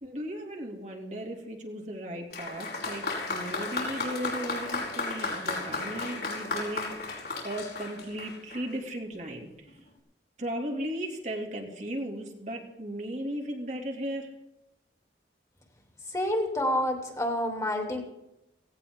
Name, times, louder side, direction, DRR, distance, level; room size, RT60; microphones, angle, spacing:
voice 1, 0.0-9.8 10.4-14.3, right 1 dB, 40° right, 1 dB, 2.6 m, -36 dB
Applause, 2.3-8.8 9.7-9.8, left 3 dB, 60° left, 5.0 m, -34 dB
voice 2, 16.1-18.0, left 1 dB, 20° left, 2 dB, 2.9 m, -28 dB
18.0 x 17.5 x 3.7 m, 0.91 s
head